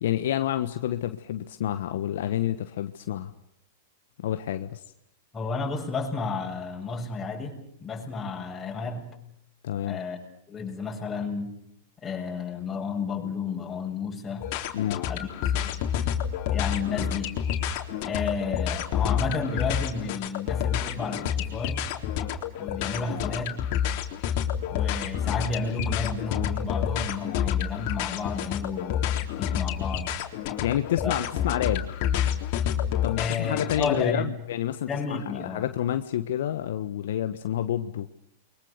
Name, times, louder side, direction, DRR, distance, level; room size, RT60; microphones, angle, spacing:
voice 1, 0.0-3.3 4.2-4.8 9.6-10.0 14.7-15.0 30.6-31.9 33.0-38.1, left 11 dB, 70° left, 9 dB, 1.2 m, -29 dB
voice 2, 5.3-9.1 9.8-10.2 10.5-11.6 12.0-14.5 15.1-15.8 16.5-17.4 18.0-21.9 22.6-23.6 24.7-29.0 29.4-30.1 31.0-31.2 33.2-34.2 34.9-35.6, left 4 dB, 20° left, 0 dB, 7.6 m, -32 dB
sound 1, 14.4-34.0, left 9 dB, 55° left, 3.7 m, -29 dB
30.0 x 23.5 x 6.7 m, 0.70 s
hypercardioid pair, 110°, 0 cm